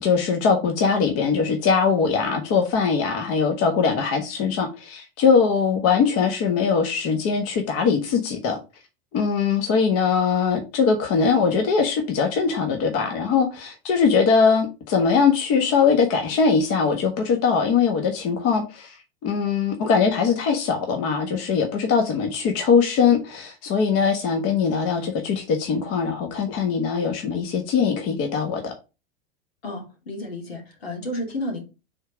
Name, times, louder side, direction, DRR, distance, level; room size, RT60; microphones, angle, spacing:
voice 1, 0.0-8.6 9.1-19.0 19.2-28.7, left 5 dB, 50° left, 1.3 m, -21 dB
voice 2, 29.6-31.6, left 1 dB, 85° left, 2.4 m, -31 dB
5.1 x 3.7 x 5.0 m
hypercardioid pair, 95°, 30 cm